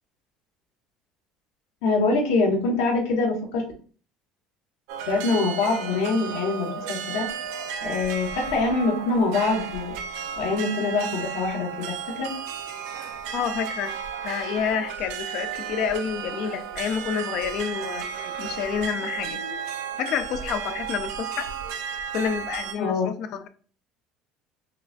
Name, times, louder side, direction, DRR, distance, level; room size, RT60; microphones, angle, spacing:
voice 1, 1.8-3.6 5.0-7.3 7.8-12.3 22.8-23.1, left 3 dB, 85° left, 1.3 m, -24 dB
sound 1, 4.9-22.7, right 7 dB, 80° right, 0.5 m, -34 dB
voice 2, 13.3-14.0 14.2-19.7 20.0-21.5 22.1-23.5, left 7 dB, 50° left, 0.4 m, -29 dB
5.6 x 2.3 x 2.5 m
cardioid pair, 170°, 0 cm